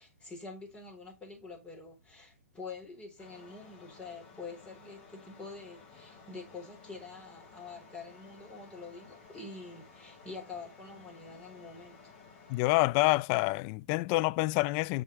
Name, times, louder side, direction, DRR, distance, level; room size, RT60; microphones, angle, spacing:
voice 1, 0.0-12.2, left 4 dB, 15° left, 3.9 m, -46 dB
sound 1, 3.2-12.6, left 5 dB, 50° left, 4.7 m, -55 dB
voice 2, 12.5-15.0, left 22 dB, 35° left, 0.3 m, -27 dB
8.5 x 6.6 x 3.1 m
hypercardioid pair, 120°, 8 cm